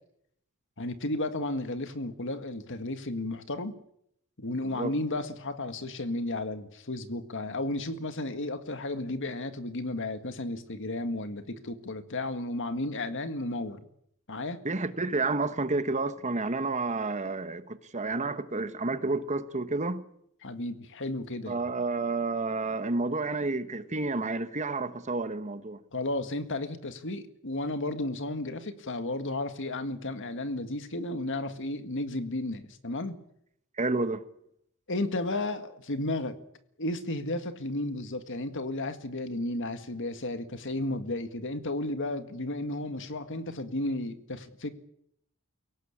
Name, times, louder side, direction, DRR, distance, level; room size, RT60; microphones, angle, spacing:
voice 1, 0.8-3.8 4.4-13.8 14.3-14.6 20.4-21.6 25.9-33.2 34.9-36.4 36.8-44.7, left 2 dB, 60° left, 1.8 m, -33 dB
voice 2, 14.6-20.0 21.5-25.8 33.8-34.2, right 3 dB, 35° right, 1.3 m, -30 dB
23.0 x 18.0 x 8.6 m
head